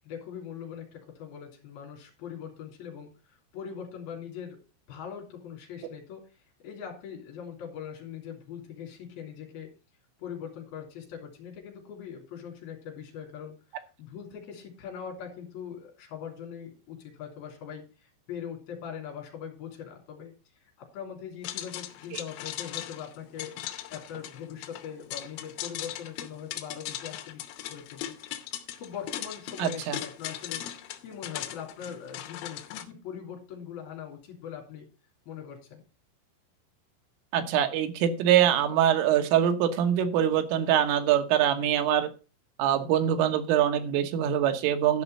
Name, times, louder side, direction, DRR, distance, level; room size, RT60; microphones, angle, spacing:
voice 1, 0.0-4.6 4.9-6.2 6.6-9.7 10.2-20.3 20.6-23.6 23.9-28.1 28.5-30.6 31.0-34.9 35.3-35.8, left 8 dB, 50° left, 1 dB, 4.7 m, -41 dB
sound 1, 21.4-32.8, left 12 dB, 85° left, 3.5 m, -39 dB
voice 2, 29.6-30.0 37.3-42.1 42.6-45.0, right 10 dB, 80° right, 6 dB, 3.7 m, -24 dB
12.5 x 5.5 x 5.4 m, 0.32 s
omnidirectional pair, 5.9 m